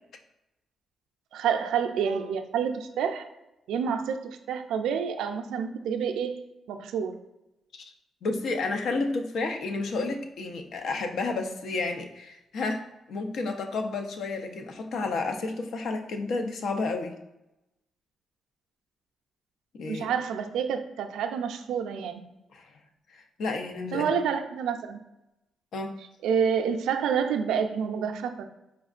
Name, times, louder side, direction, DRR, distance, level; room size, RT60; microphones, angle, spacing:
voice 1, 1.3-3.3 3.7-7.2 19.9-22.2 23.9-25.0 26.2-28.4, right 7 dB, 90° right, 6 dB, 0.4 m, -28 dB
voice 2, 8.2-17.1 19.7-20.1 22.5-22.7 23.1-24.1 25.7-25.9, left 3 dB, 70° left, 5 dB, 0.5 m, -31 dB
4.3 x 3.4 x 2.4 m, 0.94 s
cardioid pair, 85°, 0 cm